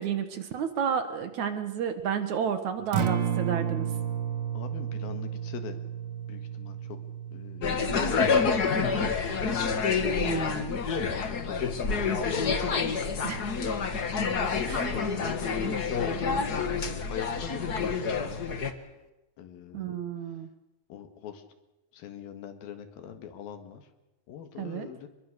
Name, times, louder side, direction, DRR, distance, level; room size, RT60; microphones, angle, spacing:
voice 1, 0.0-3.9 10.2-10.7 13.2-13.4 14.7-14.9 19.7-20.5 24.6-24.9, right 7 dB, 60° right, 8 dB, 2.3 m, -31 dB
Acoustic guitar, 2.8-11.0, right 8 dB, 75° right, 1.0 m, -34 dB
voice 2, 4.5-5.8 6.3-7.0 7.3-9.1 10.0-10.7 11.1-12.6 14.5-16.7 17.1-18.5 19.4-20.0 20.9-21.4 21.9-23.9 24.3-25.1, left 9 dB, 80° left, 8 dB, 3.6 m, -42 dB
sound 1, 7.6-18.7, left 5 dB, 60° left, 0.9 m, -28 dB
25.5 x 21.5 x 6.7 m, 1.0 s
omnidirectional pair, 4.2 m